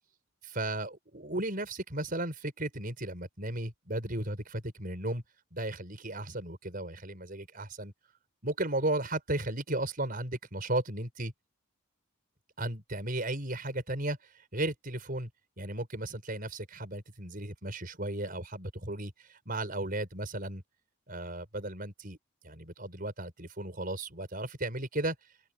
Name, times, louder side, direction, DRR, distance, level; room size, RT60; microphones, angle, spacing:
voice 1, 0.4-5.2 5.5-7.9 8.4-11.3 12.6-14.2 14.5-15.3 15.6-20.6 21.1-22.2 22.4-25.2, right 1 dB, 40° right, 5.5 m, -35 dB
open air
head